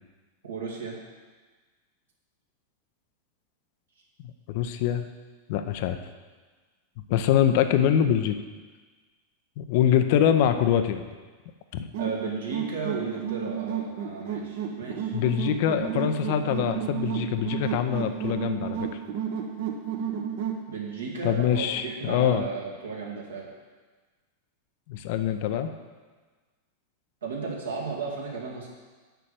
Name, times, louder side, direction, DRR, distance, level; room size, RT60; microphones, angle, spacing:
voice 1, 0.5-1.0 12.0-15.2 20.7-23.5 27.2-28.7, right 4 dB, 70° right, -3 dB, 2.2 m, -34 dB
voice 2, 4.2-5.1 5.5-6.0 7.1-8.4 9.6-11.0 11.7-11.9 15.1-18.9 21.2-22.4 24.9-25.7, left 9 dB, 50° left, 9 dB, 0.6 m, -24 dB
sound 1, 11.9-20.6, right 8 dB, 50° right, 1.1 m, -32 dB
6.9 x 6.2 x 7.6 m, 1.4 s
figure-of-eight pair, 90°, 0 cm